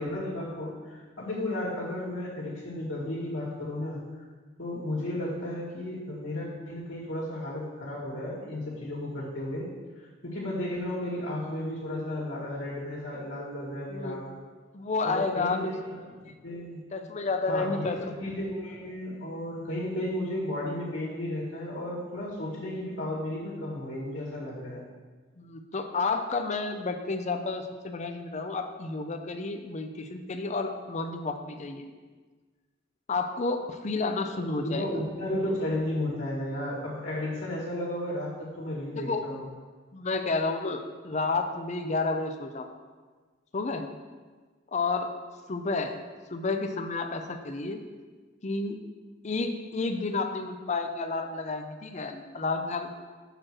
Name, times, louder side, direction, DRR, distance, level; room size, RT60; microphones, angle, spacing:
voice 1, 0.0-4.0 4.6-9.7 10.0-14.2 15.0-16.1 16.4-16.8 17.5-24.8 34.4-39.4, left 1 dB, 75° left, -5 dB, 1.9 m, -33 dB
voice 2, 14.7-15.7 16.3-16.4 16.9-18.0 25.4-31.9 33.1-34.9 38.9-39.3 39.9-42.7 43.5-43.8 44.7-45.1 45.5-46.0 46.3-47.8 48.4-48.8 49.2-52.9, left 3 dB, 35° left, 6 dB, 0.6 m, -30 dB
6.7 x 4.6 x 6.1 m, 1.4 s
head